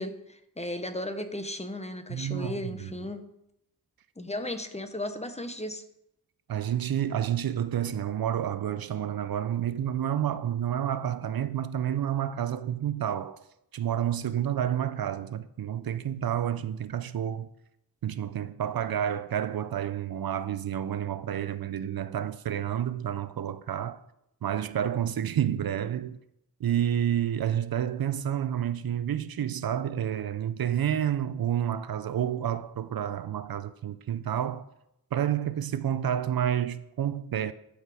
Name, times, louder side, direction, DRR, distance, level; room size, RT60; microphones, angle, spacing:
voice 1, 0.0-3.2 4.2-5.8, left 1 dB, 20° left, 0.7 m, -35 dB
voice 2, 2.1-2.9 6.5-13.4 13.7-17.5 18.0-24.0 24.4-26.2 26.6-34.6 35.1-37.5, right 10 dB, 70° right, 0.5 m, -29 dB
11.0 x 4.8 x 4.8 m
wide cardioid pair, 100°, 37 cm